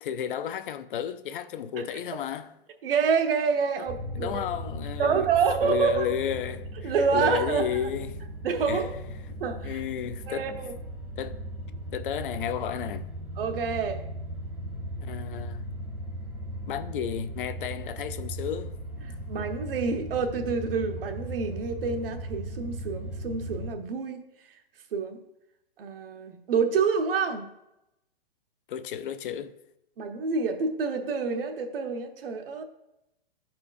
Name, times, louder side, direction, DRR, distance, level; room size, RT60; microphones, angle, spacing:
voice 1, 0.0-2.5 3.8-3.9 4.2-5.3 5.6-8.2 8.7-8.9 9.6-10.6 11.2-11.4 11.9-13.1 15.0-15.6 16.7-18.8 28.7-29.5, left 9 dB, 55° left, 0.5 m, -32 dB
voice 2, 2.8-4.4 5.0-6.1 6.8-7.7 8.4-8.9 9.4-9.7 10.3-10.7 13.4-14.0 19.3-24.2 24.9-25.2 25.8-27.4 30.0-32.6, right 5 dB, 65° right, 1.0 m, -27 dB
sound 1, 3.9-23.7, equal, 5° right, 0.5 m, -37 dB
12.5 x 4.4 x 2.5 m
hypercardioid pair, 160°, 31 cm